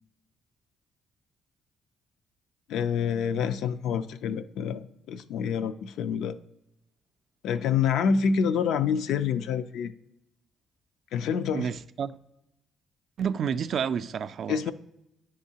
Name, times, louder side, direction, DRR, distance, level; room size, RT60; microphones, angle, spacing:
voice 1, 2.7-4.8 5.1-6.4 7.4-9.9 11.1-11.7 14.5-14.7, left 7 dB, 85° left, 0.4 m, -27 dB
voice 2, 11.5-12.1 13.2-14.7, right 7 dB, 60° right, 0.3 m, -30 dB
9.7 x 3.7 x 2.8 m
cardioid pair, 90°, 0 cm